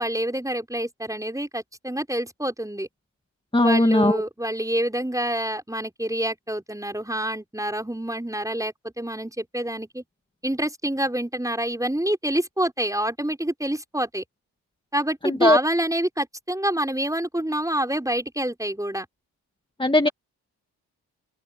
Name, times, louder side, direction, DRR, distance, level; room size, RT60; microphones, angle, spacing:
voice 1, 0.0-2.9 3.6-10.0 10.4-14.2 14.9-19.1, right 1 dB, 5° right, 5.7 m, -27 dB
voice 2, 3.5-4.2 15.2-15.6 19.8-20.1, left 1 dB, 10° left, 2.1 m, -18 dB
open air
hypercardioid pair, 40°, 46 cm